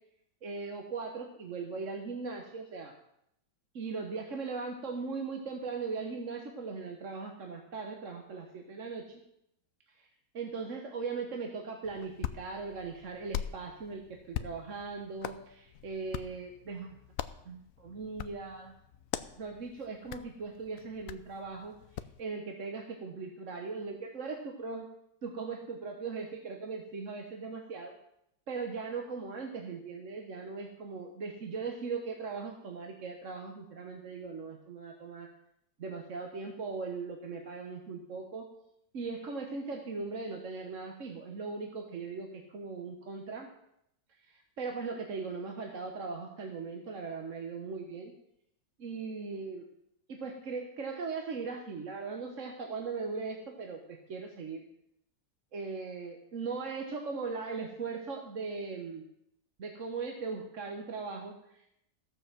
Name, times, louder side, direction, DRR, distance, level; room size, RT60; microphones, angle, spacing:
voice 1, 0.4-2.9 3.7-9.2 10.0-10.1 10.3-17.0 17.4-18.7 19.4-21.7 22.2-24.9 25.2-27.9 28.5-35.3 35.8-38.5 38.9-43.5 44.2-48.1 48.8-49.6 50.1-54.6 55.5-59.1 59.6-61.7, right 4 dB, 45° right, 2 dB, 1.4 m, -39 dB
Hands, 11.8-22.2, left 10 dB, 70° left, 0.8 m, -43 dB
14.5 x 6.9 x 7.3 m, 0.78 s
omnidirectional pair, 2.0 m